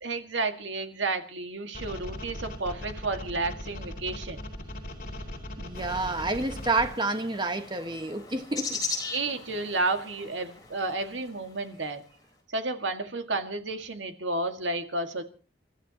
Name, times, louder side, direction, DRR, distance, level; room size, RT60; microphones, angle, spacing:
voice 1, 0.0-4.5 9.1-12.0 12.5-15.2, right 2 dB, 85° right, 2.0 m, -31 dB
sound 1, 1.7-6.9, left 1 dB, 45° left, 4.6 m, -38 dB
voice 2, 5.6-8.8, right 2 dB, 25° right, 1.5 m, -29 dB
sound 2, 5.7-12.0, left 4 dB, 20° left, 4.5 m, -39 dB
29.5 x 14.0 x 3.0 m
head